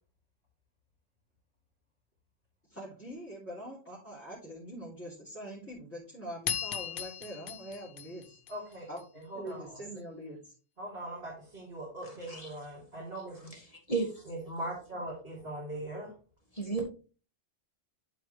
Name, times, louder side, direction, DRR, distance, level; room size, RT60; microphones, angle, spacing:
voice 1, 2.7-8.4 8.9-9.0 9.3-10.5, equal, 10° left, 3.1 m, -44 dB
sound 1, 6.5-9.0, left 9 dB, 55° left, 0.7 m, -37 dB
voice 2, 8.5-9.8 10.8-13.6 14.2-16.2, right 1 dB, 60° right, 3.7 m, -41 dB
voice 3, 13.9-14.2 16.5-16.8, right 4 dB, 30° left, 2.2 m, -32 dB
11.0 x 4.6 x 3.3 m
omnidirectional pair, 1.2 m